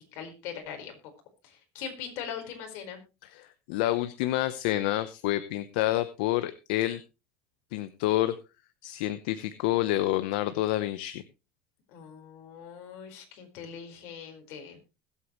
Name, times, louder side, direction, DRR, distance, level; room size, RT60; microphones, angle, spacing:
voice 1, 0.1-1.0 1.4-3.0 11.9-14.8, left 7 dB, 60° left, 4 dB, 4.7 m, -41 dB
voice 2, 3.2-7.0 7.7-8.3 8.8-11.2, left 15 dB, 80° left, 12 dB, 0.9 m, -28 dB
21.0 x 8.4 x 3.1 m, 0.28 s
supercardioid pair, 135°, 5 cm